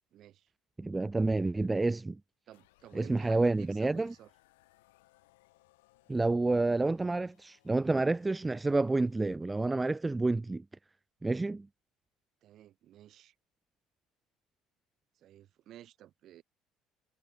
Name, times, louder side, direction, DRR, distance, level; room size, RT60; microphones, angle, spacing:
voice 1, 0.1-0.5 1.5-1.7 2.5-4.3 12.4-13.3 15.1-16.4, right 12 dB, 55° right, 3.2 m, -54 dB
voice 2, 0.8-2.2 2.9-4.1 6.1-10.6 11.2-11.7, right 2 dB, 15° right, 0.4 m, -29 dB
sound 1, 2.5-9.2, left 21 dB, 75° left, 5.8 m, -67 dB
hypercardioid pair, 60°, 0 cm